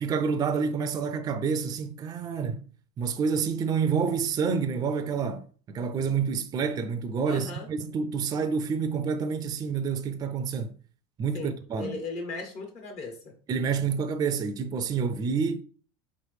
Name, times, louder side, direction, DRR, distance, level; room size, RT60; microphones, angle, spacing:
voice 1, 0.0-2.6 3.0-10.7 11.2-11.9 13.5-15.6, right 6 dB, 25° right, 0.4 m, -28 dB
voice 2, 7.2-7.7 11.3-13.3, left 3 dB, 55° left, 1.4 m, -37 dB
4.8 x 3.1 x 3.3 m
supercardioid pair, 125°, 15 cm